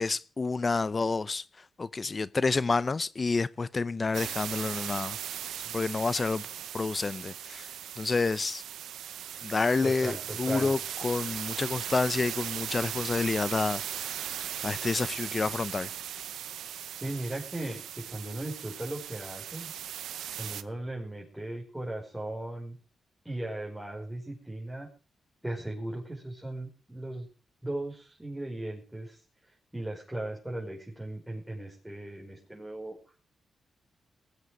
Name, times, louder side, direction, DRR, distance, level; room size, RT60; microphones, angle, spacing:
voice 1, 0.0-5.2 5.7-6.5 6.7-7.7 8.0-8.6 9.4-15.9, left 4 dB, 35° left, 0.6 m, -29 dB
sound 1, 4.1-20.6, right 10 dB, 90° right, 0.8 m, -38 dB
voice 2, 9.8-10.7 16.9-19.7 20.4-22.8 23.2-24.9 25.4-27.3 27.6-29.2 29.7-33.0, right 1 dB, 10° right, 5.4 m, -37 dB
19.5 x 8.2 x 6.3 m
cardioid pair, 70°, 0 cm